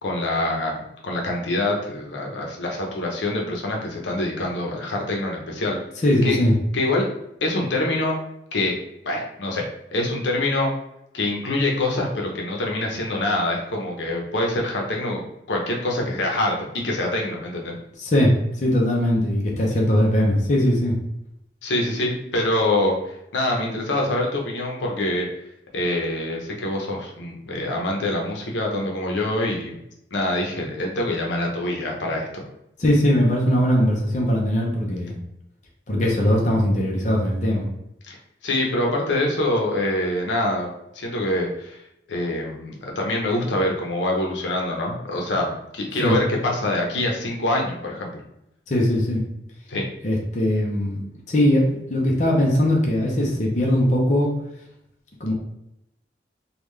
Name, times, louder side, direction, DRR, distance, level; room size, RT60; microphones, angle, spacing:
voice 1, 0.0-5.8 6.2-6.4 6.7-7.1 7.4-8.2 8.5-8.7 9.0-9.6 9.9-10.7 11.1-17.8 21.6-25.3 25.7-29.8 30.1-32.4 38.0-38.2 38.4-41.8 42.1-48.2 49.7-49.9, left 1 dB, 90° left, 0 dB, 0.7 m, -25 dB
voice 2, 6.0-6.5 18.0-20.9 32.8-35.1 35.9-37.7 46.0-46.2 48.7-49.2 50.0-51.0 51.3-54.3 55.2-55.3, left 1 dB, 40° left, -2 dB, 0.6 m, -20 dB
3.5 x 2.3 x 3.2 m, 0.82 s
head